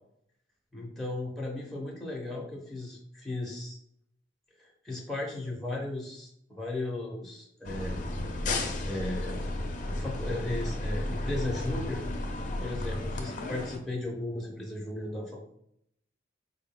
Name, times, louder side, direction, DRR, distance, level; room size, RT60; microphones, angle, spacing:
voice 1, 0.7-3.8 4.6-8.0 8.8-9.4 9.9-12.0 12.6-15.4, left 2 dB, ahead, -3 dB, 0.6 m, -36 dB
sound 1, 7.6-13.8, left 2 dB, 45° left, 0.5 m, -33 dB
4.5 x 2.1 x 3.7 m, 0.71 s
head